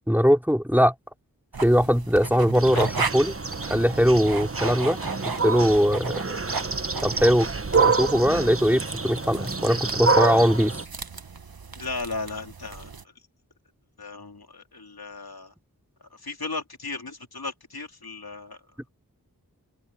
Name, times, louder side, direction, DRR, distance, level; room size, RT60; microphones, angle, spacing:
voice 1, 0.1-0.9 1.6-3.4 3.7-6.1 7.0-7.5 7.7-10.8, equal, 5° right, 2.7 m, -21 dB
sound 1, 1.5-13.0, right 4 dB, 80° right, 1.3 m, -35 dB
sound 2, 2.5-10.9, right 4 dB, 40° right, 1.2 m, -27 dB
voice 2, 11.7-12.9 14.0-15.5 16.1-18.6, left 3 dB, 90° left, 3.2 m, -36 dB
open air
wide cardioid pair, 40°, 36 cm